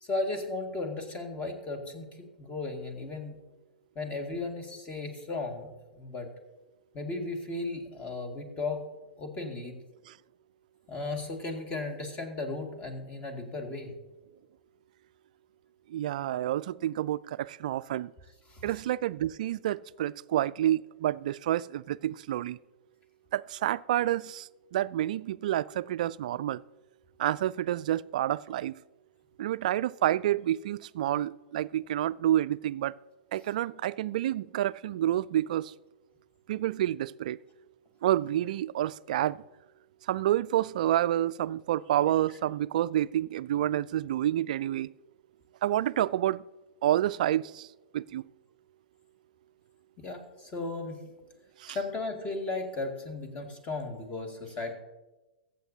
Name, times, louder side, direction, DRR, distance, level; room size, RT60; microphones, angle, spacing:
voice 1, 0.0-3.4 4.0-5.7 6.0-6.3 6.9-8.8 9.2-9.8 10.9-13.9 18.5-18.6 50.0-51.0 51.7-54.7, left 3 dB, 25° left, 4 dB, 2.0 m, -35 dB
voice 2, 15.9-18.1 18.6-22.6 23.3-26.6 27.2-28.8 29.4-32.9 33.3-35.7 36.5-37.4 38.0-39.4 40.1-44.9 45.6-46.4 46.8-47.7 47.9-48.2 51.6-51.8, right 12 dB, 55° right, 19 dB, 0.3 m, -29 dB
22.5 x 8.0 x 2.8 m, 1.1 s
figure-of-eight pair, 105°, 5 cm